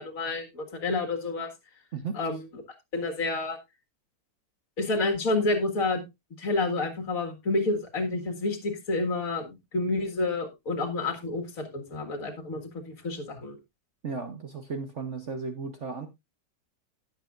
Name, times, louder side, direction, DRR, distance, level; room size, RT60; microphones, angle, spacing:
voice 1, 0.0-1.5 2.2-2.6 2.9-3.6 4.8-6.0 6.4-13.6, left 2 dB, 45° left, 2.1 m, -29 dB
voice 2, 14.0-16.1, right 4 dB, 45° right, 1.1 m, -35 dB
17.0 x 7.4 x 2.5 m
omnidirectional pair, 2.1 m